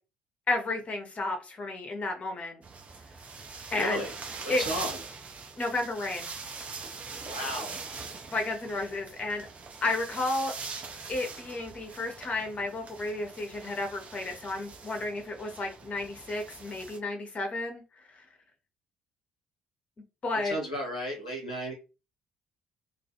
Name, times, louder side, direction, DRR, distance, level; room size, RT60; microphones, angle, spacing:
voice 1, 0.5-2.6 3.7-4.0 4.5-4.6 5.6-6.3 8.3-9.5 9.8-10.5 11.1-17.8 18.2-18.3 20.2-20.5, left 2 dB, 35° left, 4 dB, 0.7 m, -32 dB
sound 1, 2.6-17.0, right 4 dB, 35° right, 0.5 m, -42 dB
voice 2, 3.7-4.1 4.4-5.0 7.3-7.8 20.3-21.7, equal, 85° left, -2 dB, 0.7 m, -34 dB
2.3 x 2.0 x 2.7 m, 0.30 s
figure-of-eight pair, 45°, 4 cm